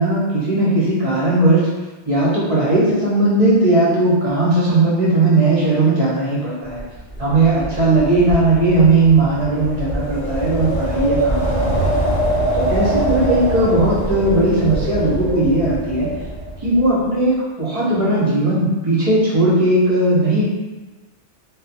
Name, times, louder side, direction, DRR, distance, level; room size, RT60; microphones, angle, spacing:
voice 1, 0.0-1.7 2.1-6.8 7.2-12.1 12.6-16.1 16.6-20.4, right 2 dB, 40° right, -7 dB, 0.5 m, -17 dB
Wind, 6.8-16.9, right 1 dB, 50° left, 0.7 m, -23 dB
2.3 x 2.0 x 2.7 m, 1.2 s
omnidirectional pair, 1.3 m